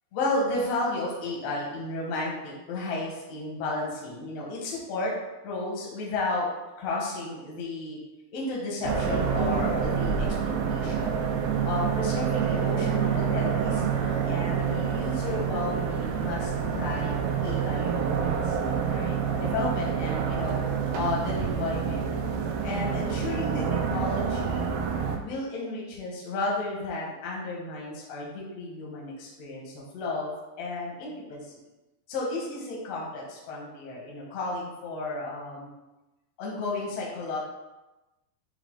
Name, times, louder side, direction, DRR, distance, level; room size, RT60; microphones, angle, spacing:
voice 1, 0.1-5.1 5.4-6.5 6.8-8.0 8.3-11.2 11.6-18.6 18.9-22.1 22.6-24.7 25.2-31.4 32.1-35.7 36.4-37.4, left 2 dB, 65° left, -3 dB, 1.6 m, -33 dB
sound 1, 8.8-25.2, right 7 dB, 80° right, 2.3 m, -27 dB
7.2 x 3.4 x 3.8 m, 1.0 s
omnidirectional pair, 4.8 m